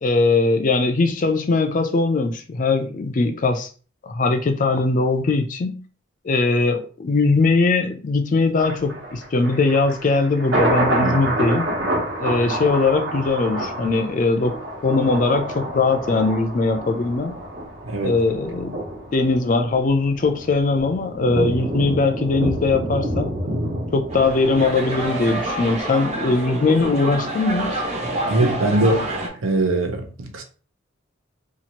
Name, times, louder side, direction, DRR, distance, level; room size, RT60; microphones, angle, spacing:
voice 1, 0.0-3.7 4.0-5.8 6.2-11.7 12.2-14.6 14.8-17.4 18.0-18.8 19.1-23.3 23.9-27.8, left 3 dB, 40° left, 0.4 m, -20 dB
Thunder, 8.6-25.7 26.1-26.2, right 1 dB, 70° right, 1.1 m, -28 dB
voice 2, 17.8-18.2 28.2-29.1 29.4-30.4, right 2 dB, 85° right, 0.6 m, -21 dB
sound 1, 24.1-29.3, right 2 dB, 35° right, 0.6 m, -27 dB
2.8 x 2.4 x 2.9 m
head